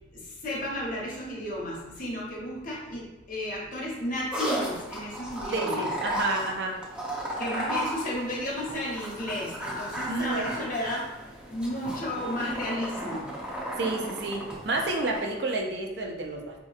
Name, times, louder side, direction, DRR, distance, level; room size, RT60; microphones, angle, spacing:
voice 1, 0.1-5.8 7.4-11.1 11.5-13.3, left 1 dB, 45° left, -4 dB, 0.9 m, -33 dB
sound 1, 4.3-15.2, right 1 dB, 5° right, 0.5 m, -35 dB
voice 2, 5.5-6.8 10.1-10.5 13.8-16.5, right 2 dB, 60° right, 1 dB, 0.5 m, -30 dB
4.1 x 2.9 x 2.4 m, 1.0 s
head